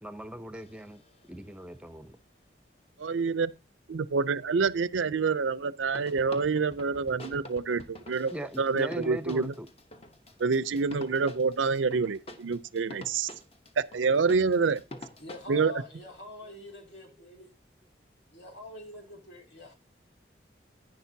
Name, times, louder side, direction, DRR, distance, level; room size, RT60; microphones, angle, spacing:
voice 1, 0.0-1.0 1.3-2.2 8.3-9.7, equal, 5° right, 0.6 m, -40 dB
sound 1, 0.5-1.6 5.9-15.5, left 1 dB, 30° left, 0.9 m, -47 dB
voice 2, 3.0-3.5 3.9-9.5 10.4-13.3 13.8-14.8 15.5-15.7, right 4 dB, 85° right, 0.5 m, -27 dB
voice 3, 15.2-17.5 18.3-19.7, left 2 dB, 65° left, 2.7 m, -45 dB
10.5 x 9.9 x 2.7 m
head